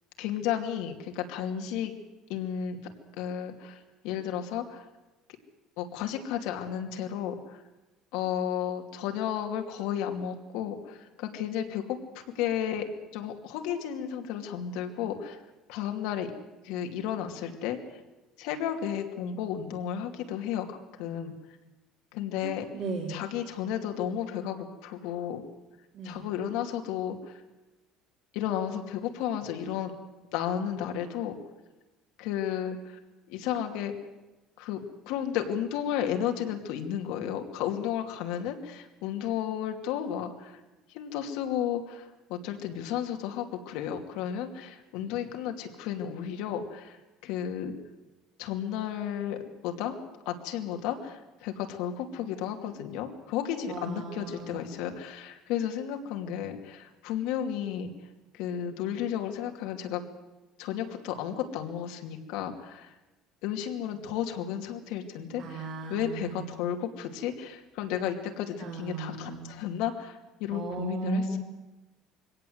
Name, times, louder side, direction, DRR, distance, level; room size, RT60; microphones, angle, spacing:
voice 1, 0.2-2.0 2.3-2.8 3.2-3.8 4.0-4.9 5.8-7.6 8.1-12.9 13.1-15.4 15.7-16.3 16.6-17.8 18.4-21.3 22.1-22.6 23.1-25.4 26.0-27.4 28.3-29.9 30.3-31.4 32.2-33.0 33.3-33.9 34.6-34.8 35.1-40.6 40.9-47.0 47.2-47.7 48.4-50.0 50.3-57.9 58.3-60.0 60.6-62.9 63.4-71.4, left 9 dB, 80° left, 4 dB, 2.6 m, -33 dB
voice 2, 22.4-23.2 25.9-26.2 53.7-54.6 63.9-64.1 65.3-66.4 68.6-69.5 70.5-71.4, right 3 dB, 45° right, -2 dB, 3.3 m, -36 dB
23.0 x 17.5 x 8.0 m, 1.1 s
cardioid pair, 160°, 0 cm